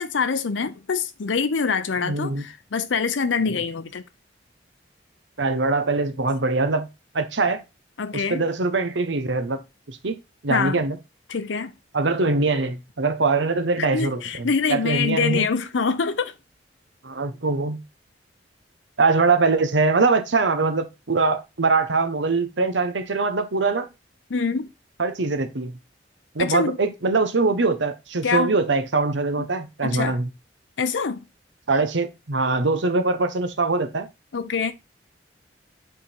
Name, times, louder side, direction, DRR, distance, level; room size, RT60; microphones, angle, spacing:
voice 1, 0.0-4.0 8.0-8.4 10.5-10.8 11.3-11.7 13.8-16.3 24.3-24.7 26.4-26.8 28.2-28.5 29.4-29.5 29.8-30.2 30.8-31.2 34.3-34.7, left 5 dB, 90° left, 0.6 m, -25 dB
voice 2, 2.0-2.4 5.4-6.9 7.1-7.6 8.1-9.6 9.9-10.1 10.4-11.0 11.9-15.5 17.0-17.8 19.0-23.9 25.0-25.8 26.3-30.3 31.7-34.1, right 3 dB, 85° right, 1.0 m, -22 dB
7.7 x 3.8 x 4.4 m
head